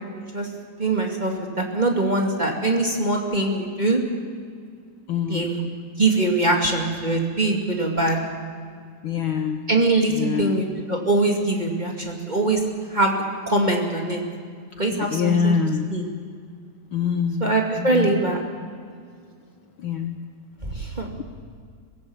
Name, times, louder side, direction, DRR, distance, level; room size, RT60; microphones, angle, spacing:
voice 1, 0.8-4.0 5.3-5.7 6.0-8.2 9.7-12.6 12.9-13.1 13.5-14.2 14.8-15.5 15.9-16.0 17.4-18.4 20.6-21.1, right 2 dB, 15° right, 0 dB, 2.1 m, -22 dB
voice 2, 5.1-5.5 9.0-9.6 10.1-10.6 14.9-15.9 16.9-17.5 17.8-18.2 19.8-20.2 20.7-21.2, left 6 dB, 80° left, 6 dB, 1.1 m, -25 dB
24.5 x 16.5 x 7.1 m, 2.2 s
omnidirectional pair, 3.5 m